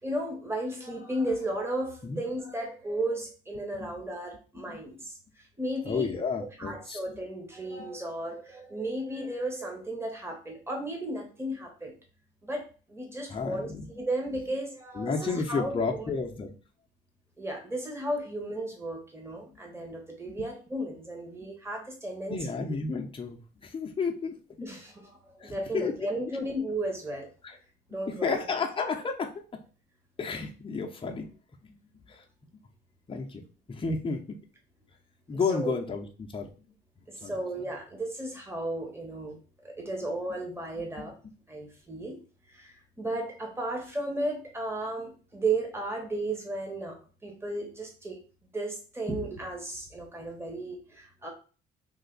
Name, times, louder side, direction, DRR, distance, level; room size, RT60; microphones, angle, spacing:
voice 1, 0.0-6.1 6.6-11.9 12.4-16.0 17.4-22.4 24.6-27.3 27.9-28.4 35.5-35.7 37.1-41.2 41.5-42.2 42.5-48.2 48.5-51.3, right 1 dB, 10° right, 1 dB, 1.3 m, -34 dB
voice 2, 5.8-7.0 13.3-13.9 15.0-16.5 20.4-20.5 22.3-24.4 25.4-26.1 27.4-27.6 28.1-29.6 30.2-31.3 31.6-31.8 32.1-32.2 33.1-33.4 33.7-34.4 35.3-36.5 37.0-37.4, left 4 dB, 25° left, 2 dB, 0.7 m, -32 dB
3.3 x 2.6 x 3.9 m, 0.37 s
cardioid pair, 90°, 20 cm